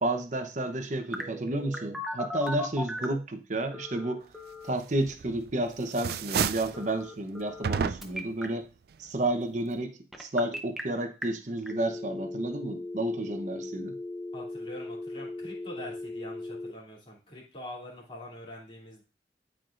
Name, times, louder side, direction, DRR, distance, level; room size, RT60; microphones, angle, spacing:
voice 1, 0.0-4.3 4.6-8.7 9.0-9.9 10.2-14.0, right 1 dB, 45° right, 7 dB, 0.9 m, -31 dB
Telephone, 1.1-3.2 3.7-4.7 6.7-7.7 8.0-8.4 10.1-10.8 11.2-11.3 11.7-16.7, left 2 dB, ahead, 0.8 m, -38 dB
sound 1, 5.1-5.5 5.8-6.8 7.6-8.3, right 6 dB, 60° right, 0.4 m, -30 dB
voice 2, 14.3-19.0, left 1 dB, 30° left, -4 dB, 2.7 m, -44 dB
12.5 x 4.7 x 2.5 m, 0.34 s
head